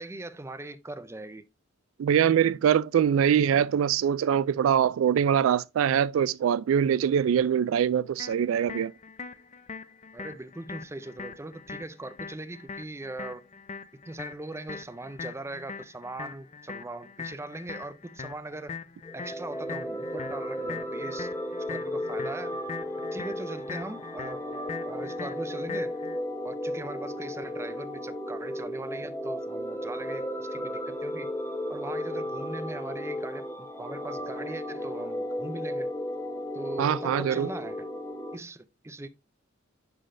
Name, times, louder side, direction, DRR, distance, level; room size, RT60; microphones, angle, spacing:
voice 1, 0.0-1.5 10.1-13.5 14.1-18.8 19.1-21.3 21.6-22.6 23.1-24.4 24.8-26.0 26.4-31.3 31.7-35.9 36.5-37.9 38.3-39.1, right 2 dB, 15° right, 0.5 m, -40 dB
voice 2, 2.0-8.9 36.8-37.5, right 8 dB, 90° right, 0.3 m, -23 dB
sound 1, 8.2-26.2, left 5 dB, 35° left, 0.5 m, -42 dB
sound 2, 19.0-38.4, left 1 dB, 15° left, 1.0 m, -34 dB
11.0 x 3.9 x 2.6 m
head